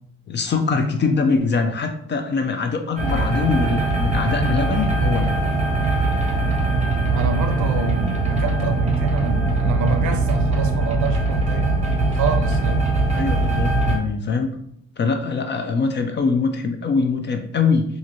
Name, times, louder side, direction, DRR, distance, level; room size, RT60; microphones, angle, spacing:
voice 1, 0.3-5.4 13.1-14.5 15.0-17.9, left 4 dB, 35° left, 6 dB, 0.4 m, -23 dB
sound 1, 3.0-14.0, right 2 dB, 20° right, 0.7 m, -21 dB
voice 2, 7.1-12.9, right 5 dB, 65° right, 6 dB, 0.5 m, -27 dB
2.8 x 2.5 x 2.7 m, 0.72 s
cardioid pair, 90°, 32 cm